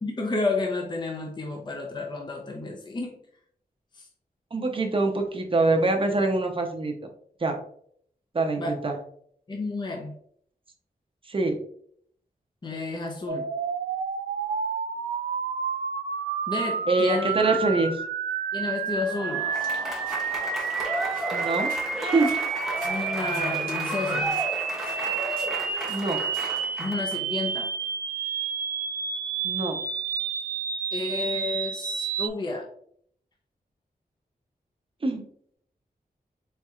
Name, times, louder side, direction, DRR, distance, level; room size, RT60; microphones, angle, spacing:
voice 1, 0.0-3.2 3.9-4.1 8.6-8.7 9.5-10.1 12.6-13.5 16.5-17.3 18.5-19.5 22.8-24.4 26.8-27.7 30.9-32.7, left 3 dB, 30° left, 1 dB, 0.6 m, -31 dB
voice 2, 4.5-6.9 7.4-7.6 8.3-8.9 11.3-11.6 16.9-18.0 21.3-21.7 22.0-22.3 25.9-26.2 29.4-29.8 35.0-35.2, right 3 dB, 35° right, 3 dB, 0.7 m, -24 dB
sound 1, 13.3-32.3, right 6 dB, 85° right, 0.5 m, -30 dB
Applause / Crowd, 19.0-27.2, right 1 dB, ahead, 0.9 m, -33 dB
sound 2, 19.5-27.2, equal, 65° left, 1.6 m, -48 dB
4.3 x 3.9 x 2.4 m, 0.63 s
wide cardioid pair, 130°, 16 cm